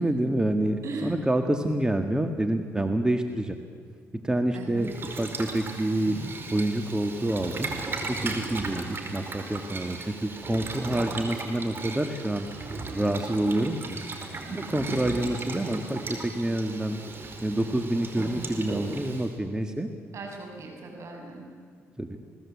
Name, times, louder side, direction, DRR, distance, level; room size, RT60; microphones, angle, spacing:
voice 1, 0.0-3.6 4.1-6.2 6.5-7.7 8.1-14.0 14.2-17.0 17.4-19.9 22.0-22.2, right 1 dB, 15° right, 6 dB, 1.8 m, -28 dB
voice 2, 0.8-1.1 4.5-4.9 14.5-15.1 20.1-21.4, right 3 dB, 60° right, 2 dB, 7.8 m, -38 dB
Boiling, 4.8-19.3, right 3 dB, 40° right, 4.6 m, -36 dB
28.0 x 19.0 x 8.6 m, 2.2 s
cardioid pair, 75°, 6 cm